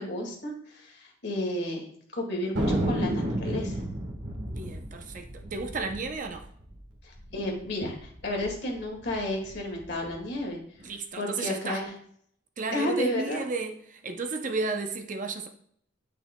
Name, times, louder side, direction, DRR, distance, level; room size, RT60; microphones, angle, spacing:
voice 1, 0.0-1.9 2.1-3.8 7.0-10.6 11.2-11.9 12.7-13.4, left 1 dB, 55° left, 1.9 m, -32 dB
Thunder, 2.5-7.4 7.6-7.7 7.9-8.5 9.0-10.2, right 1 dB, 80° right, 1.5 m, -32 dB
voice 2, 4.5-6.5 10.8-11.8 12.6-15.5, right 3 dB, 40° right, 0.6 m, -33 dB
9.4 x 5.6 x 2.2 m
head